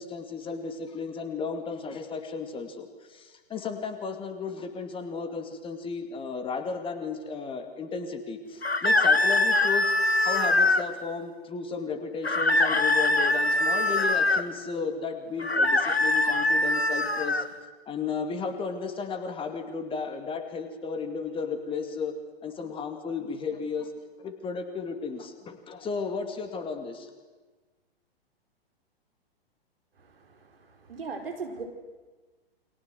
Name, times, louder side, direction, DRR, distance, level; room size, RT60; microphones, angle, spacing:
voice 1, 0.0-9.9 10.2-17.4 17.9-22.1 22.4-23.9 24.2-27.1, left 5 dB, 15° left, 7 dB, 2.4 m, -34 dB
sound 1, 8.6-10.9 12.2-14.4 15.4-17.5, left 2 dB, 85° left, 1.5 m, -23 dB
voice 2, 30.0-31.6, right 4 dB, 65° right, 4 dB, 5.0 m, -39 dB
29.0 x 24.0 x 8.0 m, 1.3 s
figure-of-eight pair, 110°, 31 cm